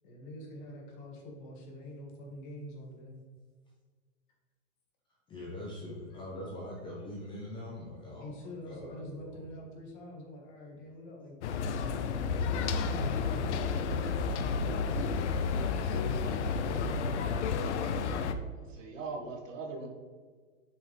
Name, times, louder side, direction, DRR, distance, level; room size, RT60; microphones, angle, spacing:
voice 1, 0.0-3.2 8.2-15.1 15.9-16.8, left 1 dB, 40° left, 0 dB, 1.7 m, -46 dB
voice 2, 5.3-9.4, left 1 dB, 10° left, -3 dB, 0.7 m, -43 dB
sound 1, 11.4-18.3, left 5 dB, 60° left, 0.7 m, -31 dB
voice 3, 18.7-19.9, right 3 dB, 75° right, 1 dB, 1.7 m, -40 dB
7.6 x 5.6 x 3.3 m, 1.5 s
hypercardioid pair, 150°, 39 cm